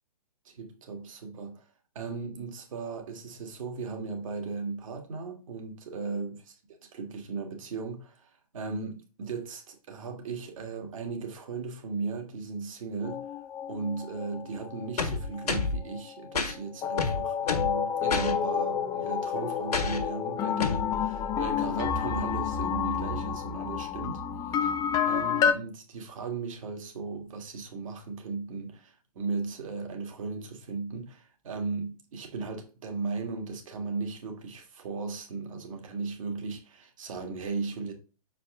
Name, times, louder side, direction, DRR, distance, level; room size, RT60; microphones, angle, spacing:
voice 1, 0.5-1.6 2.0-6.4 6.9-13.2 13.7-24.2 24.6-24.7 25.1-37.9, right 4 dB, 55° right, 1.8 m, -36 dB
sound 1, 13.0-16.6 16.8-25.5, left 8 dB, 20° left, 0.5 m, -30 dB
sound 2, 15.0-15.8 16.3-16.5 17.0-17.7 18.1-18.3 19.7-20.0 20.6-20.8, left 4 dB, 75° left, 1.5 m, -28 dB
6.2 x 4.5 x 3.7 m
figure-of-eight pair, 120°, 20 cm